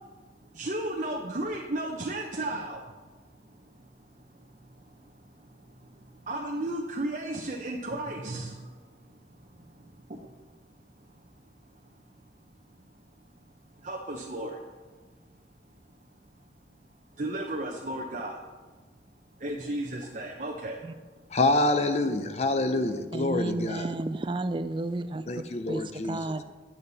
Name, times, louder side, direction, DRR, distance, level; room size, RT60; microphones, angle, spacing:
voice 1, 0.5-2.8 6.3-8.5 13.8-14.6 17.2-18.4 19.4-20.8, right 1 dB, 45° right, -1 dB, 0.8 m, -33 dB
voice 2, 21.3-23.9 25.3-26.2, left 2 dB, 40° left, 8 dB, 0.6 m, -26 dB
voice 3, 23.1-25.3 25.7-26.4, right 2 dB, 30° right, 11 dB, 0.4 m, -32 dB
10.5 x 7.2 x 4.1 m, 1.4 s
head